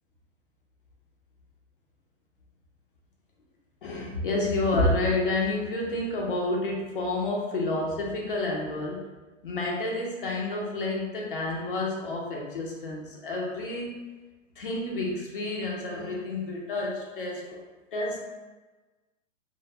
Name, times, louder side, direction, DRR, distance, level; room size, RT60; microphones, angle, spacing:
voice 1, 3.8-9.0 9.4-14.0 14.6-17.6 17.9-18.2, left 2 dB, 45° left, -2 dB, 0.5 m, -29 dB
2.1 x 2.1 x 3.3 m, 1.2 s
hypercardioid pair, 170°, 38 cm